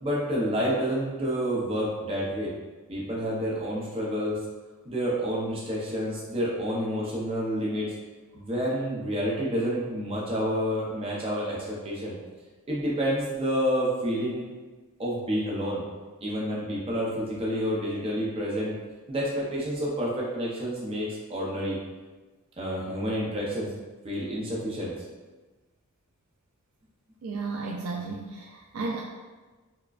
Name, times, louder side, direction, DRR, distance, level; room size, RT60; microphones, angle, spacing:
voice 1, 0.0-2.5 2.9-4.4 4.9-7.9 8.3-12.1 12.7-14.4 15.0-15.8 16.2-18.7 19.1-21.8 22.6-23.7 24.0-24.9, equal, 25° right, -6 dB, 0.6 m, -29 dB
voice 2, 27.2-29.0, right 3 dB, 70° right, -1 dB, 0.3 m, -33 dB
4.5 x 2.2 x 2.4 m, 1.3 s
head